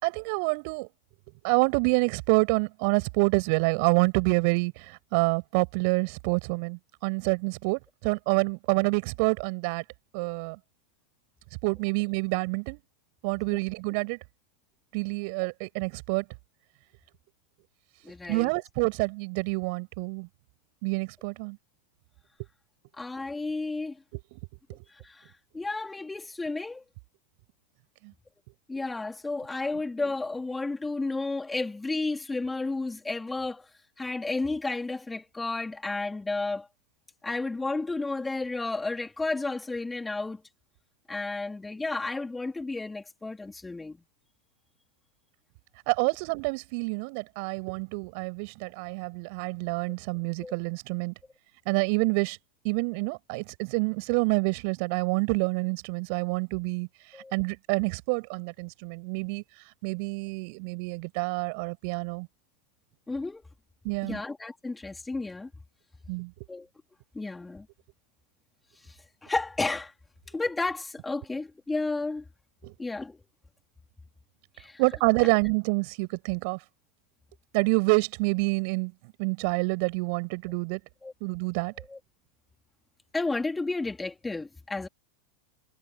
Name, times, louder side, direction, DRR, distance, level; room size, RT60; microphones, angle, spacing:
voice 1, 0.0-0.9 1.4-9.8 10.1-10.6 11.6-12.8 13.2-14.2 14.9-16.2 18.3-20.3 20.8-21.6 24.3-24.4 24.7-24.8 28.0-28.1 45.9-51.1 51.6-52.4 52.6-56.9 57.3-59.4 59.8-62.3 63.8-64.2 66.1-66.3 72.6-72.7 74.8-76.6 77.5-78.9 79.2-80.8 81.2-81.7, right 33 dB, 45° right, 5.1 m, -27 dB
voice 2, 18.0-18.5 23.0-24.0 24.9-26.8 28.7-33.6 34.0-36.7 37.2-40.4 41.1-44.0 50.4-50.5 57.1-57.3 63.1-63.4 64.0-65.5 66.5-66.7 67.1-67.7 68.9-69.0 69.2-69.9 70.3-72.2 72.8-73.2 74.6-74.8 81.0-81.1 81.9-82.0 83.1-84.9, left 3 dB, 10° left, 3.3 m, -32 dB
figure-of-eight pair, 90°, 0 cm